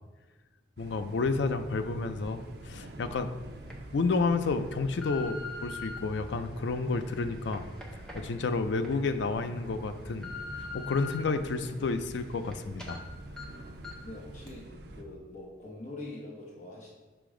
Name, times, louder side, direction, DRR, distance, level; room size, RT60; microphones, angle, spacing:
voice 1, 0.8-2.4 2.6-3.4 3.9-7.7 8.1-10.3 10.6-13.0, left 3 dB, 70° left, 10 dB, 0.4 m, -30 dB
sound 1, 0.8-15.0, right 1 dB, 60° right, 0.6 m, -46 dB
sound 2, 2.7-2.8 3.4-3.7 4.4-6.0 6.6-8.9 9.4-9.5 9.9-11.2 11.6-12.5 12.8-13.0 13.4-13.5 13.8-14.1 14.5-14.6, left 4 dB, 5° left, 0.8 m, -43 dB
voice 2, 14.0-16.9, left 2 dB, 40° left, -3 dB, 0.8 m, -44 dB
5.9 x 5.0 x 3.7 m, 1.3 s
head